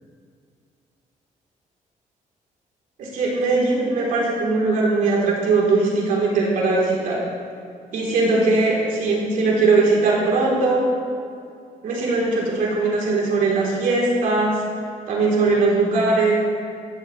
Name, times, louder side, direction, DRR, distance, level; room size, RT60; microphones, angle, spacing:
voice 1, 3.0-7.2 7.9-10.9 11.8-14.6 15.1-16.4, right 3 dB, 75° right, -4 dB, 3.6 m, -20 dB
15.5 x 14.0 x 3.3 m, 2.4 s
cardioid pair, 170°, 14 cm